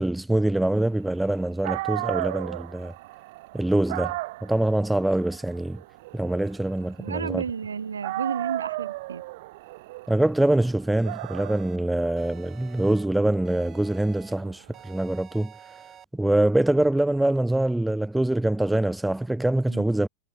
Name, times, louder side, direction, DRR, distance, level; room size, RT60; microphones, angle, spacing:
voice 1, 0.0-2.9 3.5-4.2 4.4-5.8 6.1-7.4 10.1-15.5 16.1-20.1, right 1 dB, 5° right, 3.9 m, -24 dB
Dog, 1.3-1.4 1.6-7.7 8.0-14.8, right 20 dB, 50° right, 4.9 m, -35 dB
voice 2, 7.0-9.2 19.7-19.9, right 6 dB, 70° right, 2.8 m, -32 dB
sound 1, 11.0-11.8 12.2-13.1 13.5-14.3 14.7-16.1, right 9 dB, 25° right, 7.1 m, -49 dB
figure-of-eight pair, 90°, 0 cm